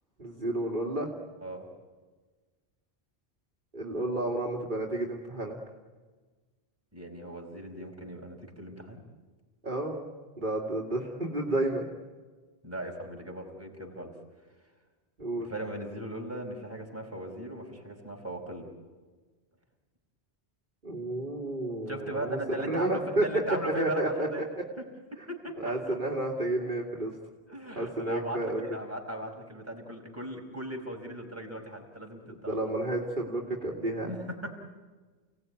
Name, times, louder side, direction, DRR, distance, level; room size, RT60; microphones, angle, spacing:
voice 1, 0.2-1.1 3.7-5.6 9.6-10.1 10.4-11.9 15.2-15.5 20.8-23.2 23.8-24.4 25.6-27.1 27.8-28.7 32.5-34.1, right 1 dB, 50° right, -1 dB, 2.7 m, -31 dB
voice 2, 6.9-9.0 12.6-14.1 15.4-18.7 21.9-24.5 25.3-25.5 25.9-26.0 27.5-32.7 34.0-34.5, right 1 dB, 15° right, 1 dB, 4.7 m, -38 dB
30.0 x 18.0 x 9.5 m, 1.3 s
omnidirectional pair, 1.1 m